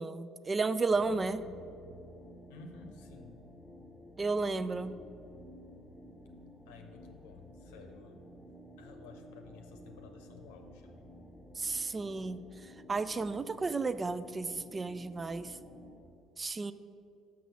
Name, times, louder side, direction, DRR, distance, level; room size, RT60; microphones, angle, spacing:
voice 1, 0.0-1.4 4.2-4.9 11.6-12.4 12.9-15.6 16.4-16.7, right 3 dB, 25° right, 13 dB, 0.3 m, -33 dB
sound 1, 0.9-16.0, equal, 5° left, 0.9 m, -53 dB
voice 2, 2.5-3.4 6.7-8.2 8.8-11.0, left 4 dB, 80° left, 5 dB, 0.8 m, -53 dB
6.1 x 6.0 x 7.0 m, 2.6 s
hypercardioid pair, 60°, 0 cm